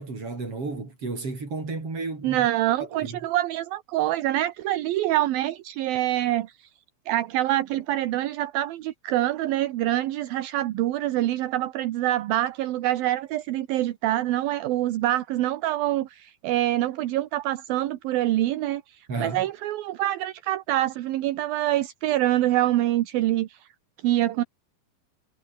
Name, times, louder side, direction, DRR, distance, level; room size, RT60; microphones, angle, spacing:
voice 1, 0.0-2.5 2.8-3.2 19.1-19.4, right 3 dB, 30° right, 7.1 m, -33 dB
voice 2, 2.2-6.7 7.1-23.7 24.0-24.4, right 14 dB, 70° right, 2.5 m, -25 dB
omnidirectional pair, 5.2 m